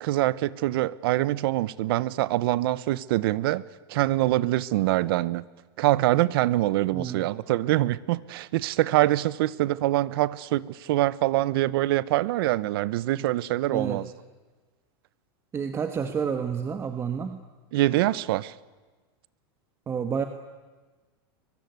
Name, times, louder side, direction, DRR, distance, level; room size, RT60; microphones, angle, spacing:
voice 1, 0.0-3.6 3.9-5.4 5.8-14.1 17.7-18.5, right 16 dB, 65° right, 0.9 m, -24 dB
voice 2, 13.7-14.0 15.5-17.4 19.9-20.2, right 6 dB, 20° right, 1.3 m, -29 dB
24.0 x 22.5 x 9.5 m
supercardioid pair, 145°, 13 cm